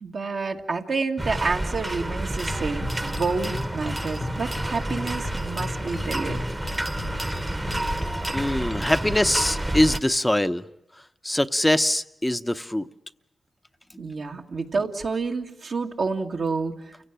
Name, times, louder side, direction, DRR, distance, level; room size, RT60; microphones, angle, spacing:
voice 1, 0.0-6.4 14.0-17.1, right 4 dB, 70° right, 1.9 m, -29 dB
sound 1, 1.2-10.0, right 1 dB, 20° right, 1.2 m, -30 dB
sound 2, 2.5-10.0, left 3 dB, 45° left, 0.8 m, -37 dB
voice 2, 8.3-10.6 11.2-12.8, left 1 dB, 15° left, 0.9 m, -23 dB
29.0 x 17.0 x 9.0 m
cardioid pair, 50°, 0 cm